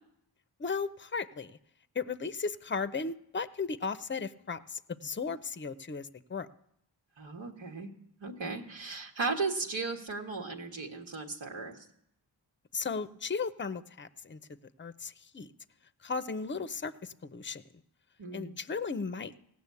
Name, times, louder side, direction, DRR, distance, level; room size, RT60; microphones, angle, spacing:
voice 1, 0.6-1.6 1.9-6.5 12.7-14.4 14.8-15.5 16.0-17.6 18.3-19.3, left 5 dB, 25° left, 14 dB, 0.6 m, -36 dB
voice 2, 7.2-7.9 8.2-11.8 18.2-18.5, right 3 dB, 80° right, 1 dB, 1.5 m, -36 dB
16.5 x 6.2 x 8.3 m, 0.75 s
cardioid pair, 40°, 46 cm